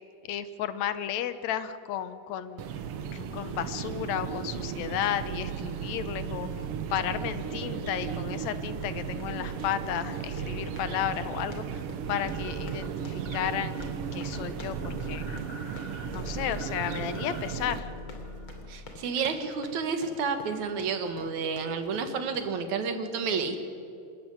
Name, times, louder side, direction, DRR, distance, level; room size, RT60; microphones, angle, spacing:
voice 1, 0.3-6.5 6.9-11.8 12.1-15.3 16.1-17.9, left 10 dB, 75° left, 12 dB, 2.2 m, -33 dB
sound 1, 2.6-17.8, right 7 dB, 60° right, 1.8 m, -35 dB
sound 2, 7.3-7.5 8.1-8.3 9.0-22.6, left 2 dB, 45° left, 3.4 m, -49 dB
sound 3, 12.2-13.4 13.7-14.0 14.3-19.1, left 1 dB, 30° left, 0.8 m, -42 dB
voice 2, 18.7-23.6, right 5 dB, 75° right, 7 dB, 3.0 m, -30 dB
26.0 x 13.5 x 9.6 m, 2.5 s
omnidirectional pair, 3.3 m